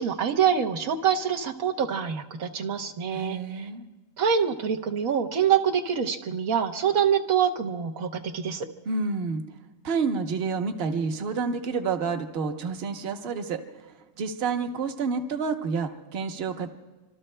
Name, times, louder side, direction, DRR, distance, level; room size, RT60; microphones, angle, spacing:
voice 1, 0.0-3.7 4.2-8.7, right 8 dB, 80° right, 3 dB, 1.4 m, -25 dB
voice 2, 3.1-3.8 8.9-9.4 9.8-16.7, right 5 dB, 50° right, 5 dB, 1.1 m, -29 dB
25.5 x 25.0 x 2.2 m, 1.2 s
omnidirectional pair, 1.4 m